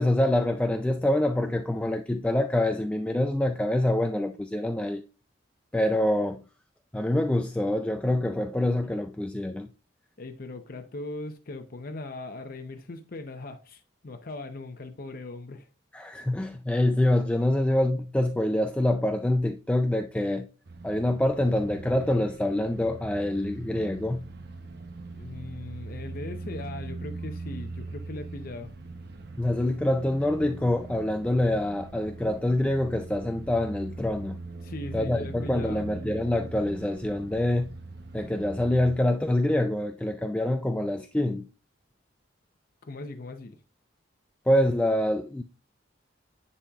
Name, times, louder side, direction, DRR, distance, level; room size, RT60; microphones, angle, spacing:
voice 1, 0.0-5.0 5.7-6.4 6.9-9.7 15.9-20.5 20.8-24.3 29.4-34.4 34.9-37.7 38.1-41.5 44.5-45.4, left 1 dB, 5° left, 0.3 m, -26 dB
voice 2, 10.2-15.7 25.1-28.7 34.6-35.9 42.8-43.6, left 2 dB, 50° left, 0.6 m, -39 dB
sound 1, 20.6-39.0, right 3 dB, 55° right, 0.7 m, -41 dB
10.0 x 4.2 x 2.3 m
head